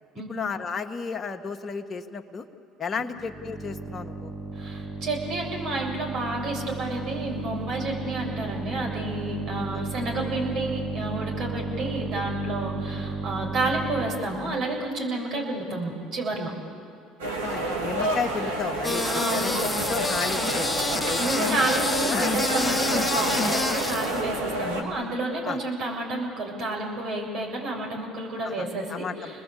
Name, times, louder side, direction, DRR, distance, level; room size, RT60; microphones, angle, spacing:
voice 1, 0.3-2.4 2.8-4.3 17.4-20.7 21.0-21.2 22.1-22.4 25.4-25.6 28.4-29.4, left 5 dB, 35° left, 6 dB, 1.6 m, -33 dB
sound 1, 3.2-14.4, right 3 dB, 15° right, 5.5 m, -33 dB
voice 2, 4.5-16.5 19.0-19.5 21.2-29.4, right 2 dB, 60° right, 0 dB, 7.2 m, -30 dB
sound 2, 17.2-24.8, right 1 dB, 90° right, 2.8 m, -29 dB
sound 3, 18.8-24.3, left 3 dB, 15° left, 0.9 m, -28 dB
29.5 x 20.5 x 8.5 m, 2.4 s
hypercardioid pair, 70°, 0 cm